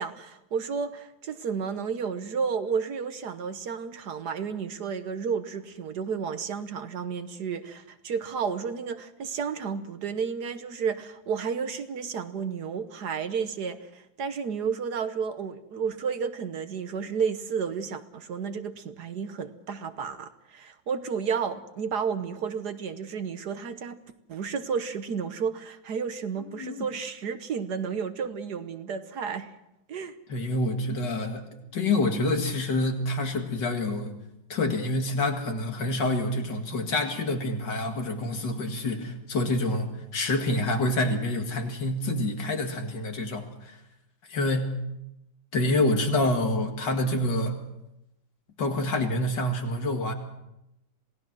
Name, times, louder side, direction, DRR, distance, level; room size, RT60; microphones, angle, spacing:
voice 1, 0.0-24.0 24.3-29.5 29.9-30.1, right 6 dB, 60° right, 10 dB, 1.5 m, -32 dB
voice 2, 26.4-26.9 30.3-31.5 31.7-34.2 34.5-43.8 44.3-44.7 45.5-47.6 48.6-50.1, left 2 dB, 65° left, 4 dB, 2.6 m, -27 dB
27.5 x 18.0 x 6.1 m, 0.88 s
omnidirectional pair, 2.1 m